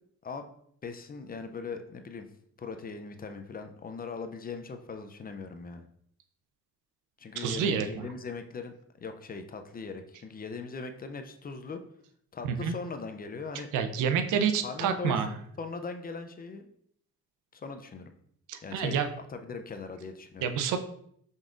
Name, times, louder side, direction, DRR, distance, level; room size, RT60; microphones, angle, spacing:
voice 1, 0.8-2.3 2.6-5.8 7.2-8.7 9.0-11.8 12.3-13.7 14.6-16.7 17.5-18.1 18.6-20.5, left 4 dB, 30° left, 7 dB, 0.5 m, -40 dB
voice 2, 7.4-8.1 12.4-12.7 13.7-15.3 18.5-19.1 20.4-20.8, right 7 dB, 85° right, 8 dB, 0.6 m, -28 dB
5.3 x 3.6 x 2.5 m, 0.67 s
cardioid pair, 90°, 30 cm